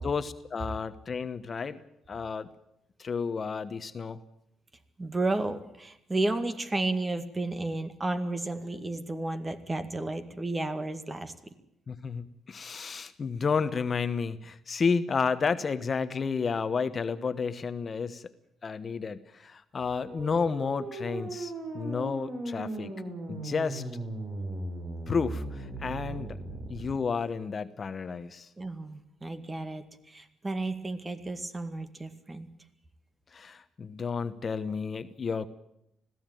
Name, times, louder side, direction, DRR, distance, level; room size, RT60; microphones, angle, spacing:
voice 1, 0.0-1.8 2.1-2.5 3.0-4.2 11.9-18.3 18.6-22.9 23.3-23.8 25.1-26.4 26.7-28.5 33.3-35.5, left 5 dB, 40° left, 12 dB, 1.1 m, -31 dB
voice 2, 5.0-11.3 28.6-32.5, right 2 dB, 20° right, 9 dB, 2.0 m, -32 dB
sound 1, 19.8-26.9, right 2 dB, 55° right, 5.4 m, -38 dB
21.0 x 15.5 x 9.2 m, 0.80 s
cardioid pair, 90°, 0 cm